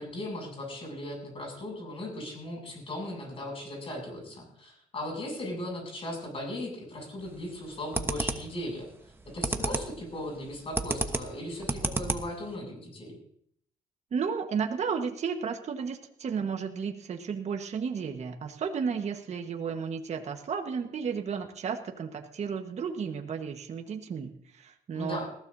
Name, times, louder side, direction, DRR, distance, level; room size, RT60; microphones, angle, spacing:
voice 1, 0.0-8.9 9.3-13.2 24.9-25.3, left 1 dB, 40° left, 1 dB, 7.5 m, -37 dB
sound 1, 7.2-7.5 7.9-8.6 9.0-10.0 10.3-12.5, right 2 dB, 15° right, 1.1 m, -31 dB
voice 2, 14.1-25.2, right 6 dB, 50° right, 4 dB, 1.4 m, -33 dB
20.0 x 15.5 x 2.8 m, 0.66 s
cardioid pair, 110°, 15 cm